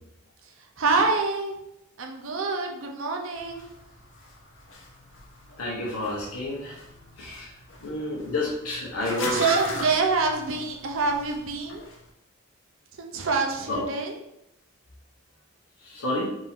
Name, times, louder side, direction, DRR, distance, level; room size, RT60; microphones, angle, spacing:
voice 1, 0.8-1.6 2.0-3.7 9.3-11.8 13.0-14.1, right 4 dB, 60° right, 2 dB, 0.7 m, -26 dB
sound 1, 3.4-12.1, left 2 dB, 60° left, 0.8 m, -40 dB
voice 2, 5.6-6.8 7.2-7.5 7.8-9.4 13.7-13.8 15.8-16.3, left 1 dB, 75° left, -5 dB, 1.1 m, -30 dB
5.0 x 2.8 x 3.6 m, 0.83 s
head